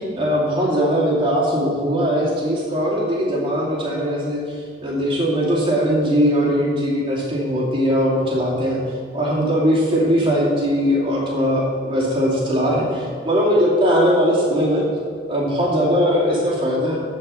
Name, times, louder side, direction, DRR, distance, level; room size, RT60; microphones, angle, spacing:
voice 1, 0.1-8.8 9.1-14.8 15.3-17.0, equal, 30° right, -5 dB, 2.5 m, -20 dB
11.5 x 4.7 x 7.6 m, 2.1 s
head